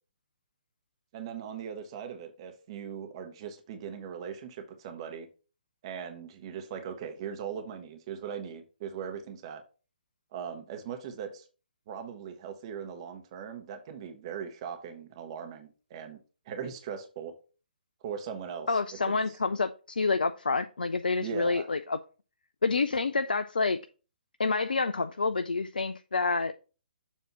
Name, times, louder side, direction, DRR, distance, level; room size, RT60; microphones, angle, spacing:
voice 1, 1.1-5.3 5.8-9.6 10.3-11.5 11.9-16.2 16.5-17.3 18.0-18.8 19.1-19.4 21.2-21.7, right 7 dB, 35° right, 0.8 m, -39 dB
voice 2, 18.7-19.7 20.0-22.0 22.6-23.8 24.4-26.5, left 4 dB, 70° left, 0.4 m, -28 dB
7.2 x 2.8 x 5.8 m
figure-of-eight pair, 130°, 5 cm